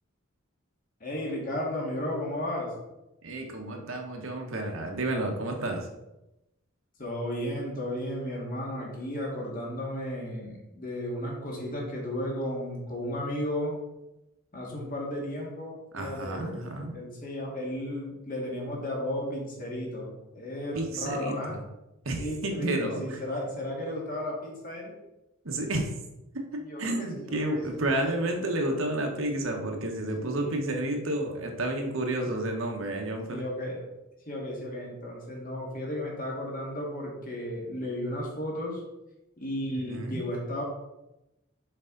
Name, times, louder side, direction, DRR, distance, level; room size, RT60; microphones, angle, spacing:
voice 1, 1.0-2.7 7.0-13.8 14.5-21.6 22.2-24.9 26.6-28.1 30.1-30.6 33.2-33.8 34.3-38.8 39.4-40.6, left 1 dB, 40° left, -2 dB, 2.0 m, -34 dB
voice 2, 3.2-5.9 15.9-16.9 20.7-21.6 22.0-23.2 25.4-25.9 26.3-33.4 39.7-40.2, right 1 dB, 70° right, 2 dB, 1.2 m, -31 dB
6.7 x 4.8 x 3.9 m, 0.94 s
head